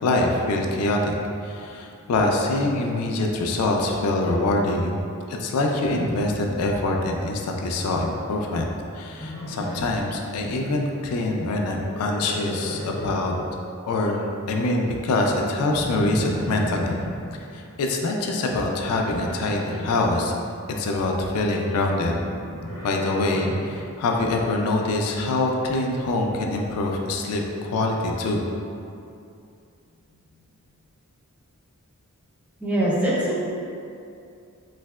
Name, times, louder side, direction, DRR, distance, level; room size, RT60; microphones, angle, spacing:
voice 1, 0.0-1.2 1.4-4.9 5.3-8.7 8.9-13.3 13.9-16.9 17.5-20.3 20.8-22.1 22.8-28.4, left 2 dB, 80° left, 1 dB, 0.3 m, -24 dB
Livestock farm animals working animals, 5.7-7.0 7.3-7.8 9.1-10.1 11.7-13.4 15.7-17.1 19.1-20.2 22.0-23.7, equal, 15° left, 1.0 m, -35 dB
voice 2, 32.6-33.4, right 1 dB, 5° right, -7 dB, 0.4 m, -23 dB
3.2 x 2.7 x 2.2 m, 2.5 s
head